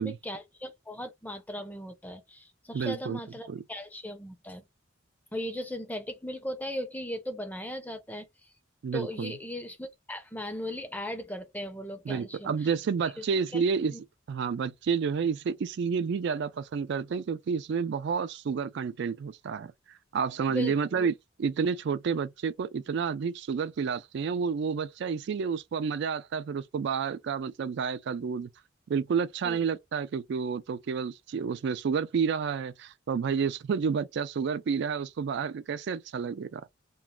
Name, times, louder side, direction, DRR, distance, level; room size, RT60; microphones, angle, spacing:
voice 1, 0.0-4.6 5.3-8.3 8.9-12.5 13.2-13.3 13.5-13.6 13.9-14.0 20.5-21.1 29.4-29.6, left 1 dB, 10° left, 0.5 m, -38 dB
voice 2, 2.7-3.2 3.5-3.6 8.8-9.3 12.1-13.9 14.3-19.7 20.1-21.1 21.4-28.5 28.9-36.6, right 6 dB, 60° right, 0.3 m, -30 dB
3.1 x 2.3 x 2.2 m
head